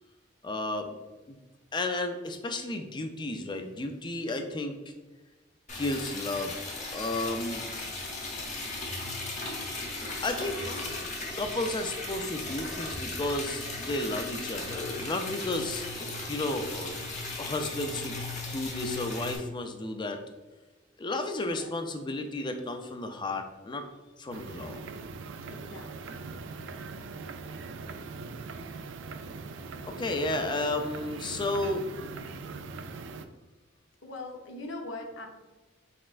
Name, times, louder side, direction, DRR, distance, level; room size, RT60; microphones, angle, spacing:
voice 1, 0.4-1.0 1.3-1.4 1.7-4.9 5.8-6.6 6.9-7.6 10.2-10.6 10.8-15.8 16.3-17.0 17.4-18.2 18.5-20.2 21.0-23.8 24.2-24.9 29.8-31.9, left 2 dB, 25° left, 6 dB, 0.4 m, -33 dB
Liquid, 5.7-19.4, left 2 dB, 40° left, 0.9 m, -37 dB
voice 2, 10.4-11.1 21.4-21.7 25.5-26.2 34.0-35.3, left 2 dB, 70° left, 3 dB, 0.7 m, -42 dB
sound 1, 24.3-33.3, right 4 dB, 70° right, 0.3 m, -41 dB
4.3 x 4.2 x 2.4 m, 1.2 s
head